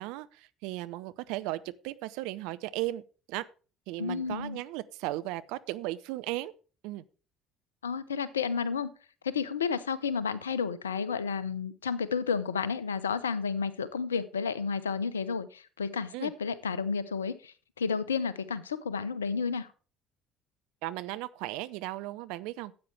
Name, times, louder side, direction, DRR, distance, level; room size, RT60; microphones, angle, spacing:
voice 1, 0.0-3.0 3.3-3.5 3.9-6.5 6.8-7.0 16.1-16.3 20.8-22.7, right 17 dB, 65° right, 0.6 m, -36 dB
voice 2, 4.0-4.6 7.8-8.9 9.2-19.7, left 5 dB, 85° left, 0.7 m, -31 dB
13.0 x 8.6 x 3.3 m
figure-of-eight pair, 55°, 0 cm